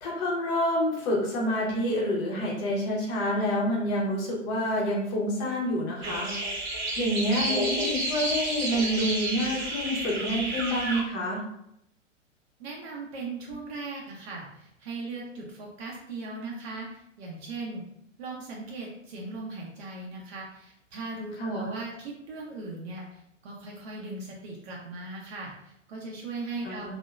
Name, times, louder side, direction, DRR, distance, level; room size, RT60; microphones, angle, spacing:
voice 1, 0.0-11.5 21.4-21.7 26.6-26.9, equal, 25° left, -2 dB, 0.6 m, -28 dB
sound 1, 6.0-11.0, right 1 dB, 35° right, 1.0 m, -30 dB
voice 2, 12.6-17.8 18.2-26.9, right 3 dB, 55° right, -3 dB, 0.6 m, -38 dB
2.7 x 2.1 x 2.3 m, 0.78 s
figure-of-eight pair, 110°, 38 cm